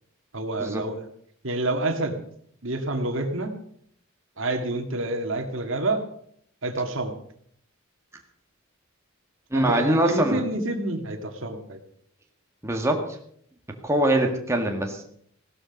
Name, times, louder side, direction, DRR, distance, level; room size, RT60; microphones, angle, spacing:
voice 1, 0.3-1.1 1.4-2.2 2.6-3.6 4.4-6.0 6.6-7.1 9.5-11.8, right 2 dB, 65° right, 5 dB, 2.0 m, -28 dB
voice 2, 9.5-10.4 12.6-13.0 13.8-15.0, right 1 dB, 15° right, 2 dB, 1.7 m, -23 dB
16.5 x 13.0 x 5.3 m, 0.65 s
head